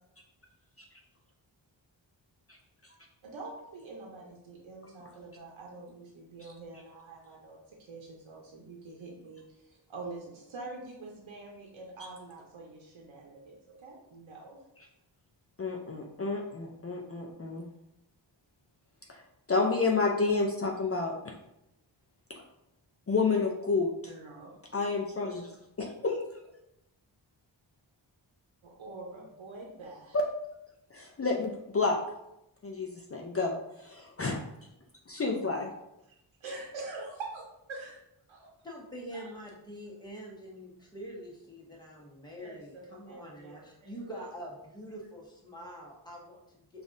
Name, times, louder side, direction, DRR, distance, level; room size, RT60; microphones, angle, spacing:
voice 1, 3.2-14.6 24.0-24.5 28.6-30.2 36.4-37.4 37.7-38.0 38.3-38.5 39.1-39.3 42.4-43.9, right 3 dB, 90° right, -2 dB, 0.7 m, -45 dB
voice 2, 15.6-17.7 19.1-19.2 19.5-21.3 23.1-23.9 24.7-25.5 25.8-26.2 30.1-30.2 30.9-32.0 32.6-34.4 35.1-35.7, left 4 dB, 30° left, 0 dB, 0.5 m, -30 dB
voice 3, 38.6-46.8, equal, 10° left, -3 dB, 1.1 m, -45 dB
5.2 x 2.5 x 2.5 m, 0.85 s
wide cardioid pair, 75°, 46 cm